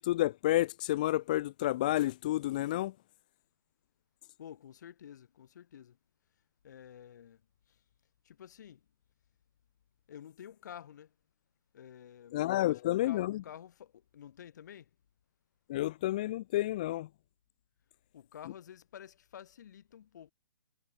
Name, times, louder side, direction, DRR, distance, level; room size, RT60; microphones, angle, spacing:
voice 1, 0.0-2.9 12.3-13.4 15.7-17.1, left 15 dB, 20° left, 0.5 m, -30 dB
voice 2, 4.4-6.0 6.6-7.4 8.2-8.8 10.1-11.1 11.7-14.9 18.1-20.3, left 9 dB, 45° left, 7.9 m, -50 dB
hypercardioid pair, 180°, 14 cm